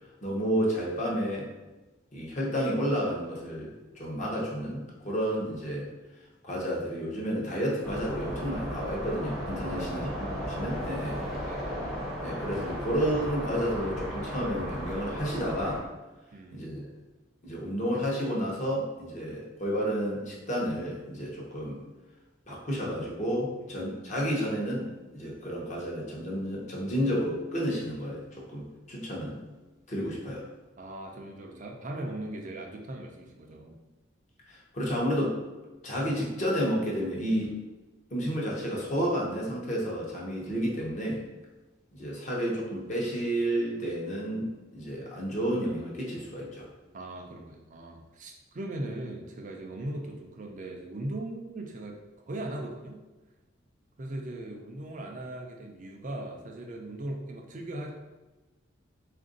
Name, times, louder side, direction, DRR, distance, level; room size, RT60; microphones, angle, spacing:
voice 1, 0.2-1.5 2.1-5.9 6.4-11.2 12.2-15.8 16.5-16.9 17.4-21.8 22.5-29.4 29.9-30.4 34.4-35.4 35.8-37.5 38.1-41.2 41.9-46.7, equal, 40° left, -3 dB, 0.8 m, -31 dB
sound 1, 7.8-15.8, equal, ahead, 0.7 m, -35 dB
voice 2, 9.6-10.2 11.0-12.0 16.3-16.8 23.6-23.7 30.8-33.8 46.9-52.0 52.3-53.0 54.0-57.9, right 1 dB, 40° right, 1 dB, 0.4 m, -39 dB
3.5 x 2.5 x 3.8 m, 1.2 s
head